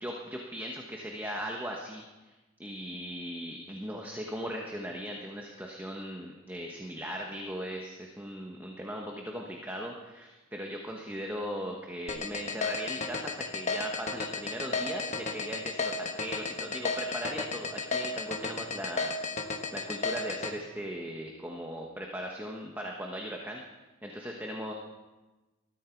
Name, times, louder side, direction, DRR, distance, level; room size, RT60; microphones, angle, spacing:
voice 1, 0.0-2.3 2.6-19.4 19.7-23.6 24.0-24.7, equal, 10° right, 0 dB, 1.2 m, -38 dB
sound 1, 12.1-20.5, left 4 dB, 30° left, 1.3 m, -32 dB
20.5 x 13.5 x 4.6 m, 1.2 s
head